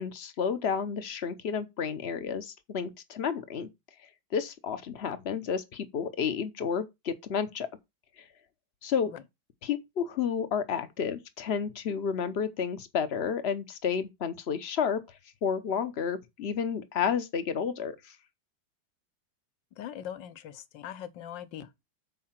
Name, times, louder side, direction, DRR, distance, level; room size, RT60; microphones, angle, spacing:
voice 1, 0.0-3.7 4.3-7.7 8.2-8.3 8.8-9.1 9.6-15.0 15.4-18.2, left 7 dB, 50° left, 0.8 m, -31 dB
voice 2, 19.8-21.7, left 10 dB, 70° left, 1.4 m, -41 dB
7.6 x 4.8 x 5.7 m
omnidirectional pair, 2.1 m